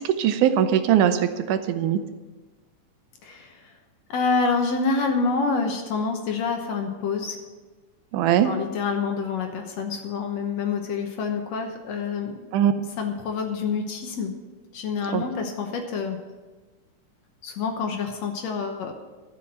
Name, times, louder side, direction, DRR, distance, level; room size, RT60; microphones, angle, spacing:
voice 1, 0.0-2.0 8.1-8.5 12.5-12.7 15.1-15.2, right 10 dB, 80° right, 9 dB, 2.1 m, -21 dB
voice 2, 3.2-3.7 4.1-7.4 8.4-12.4 13.0-14.3 14.7-16.2 17.4-18.9, left 4 dB, 65° left, 4 dB, 2.0 m, -27 dB
13.0 x 5.7 x 7.5 m, 1.2 s
omnidirectional pair, 3.6 m